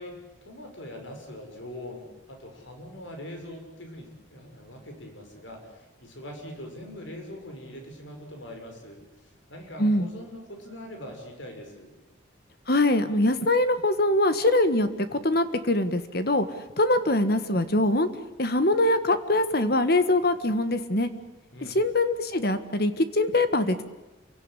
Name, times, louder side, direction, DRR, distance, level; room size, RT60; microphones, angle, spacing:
voice 1, 0.0-9.0 9.5-11.9 21.5-21.8, left 1 dB, 75° left, 3 dB, 6.7 m, -42 dB
voice 2, 12.7-16.5 16.8-18.1 18.4-21.1 21.6-23.8, left 1 dB, 50° left, 11 dB, 1.6 m, -23 dB
28.0 x 17.5 x 10.0 m, 1.1 s
head